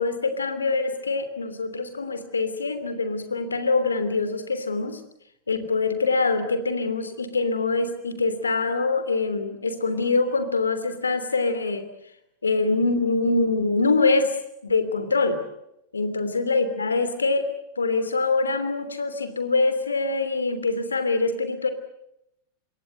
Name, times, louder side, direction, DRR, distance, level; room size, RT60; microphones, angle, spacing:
voice 1, 0.0-5.0 5.5-11.8 12.4-14.4 14.6-15.4 15.9-17.5 17.8-21.7, left 3 dB, 75° left, 11 dB, 3.0 m, -24 dB
26.5 x 22.5 x 7.9 m, 0.82 s
figure-of-eight pair, 90°, 0 cm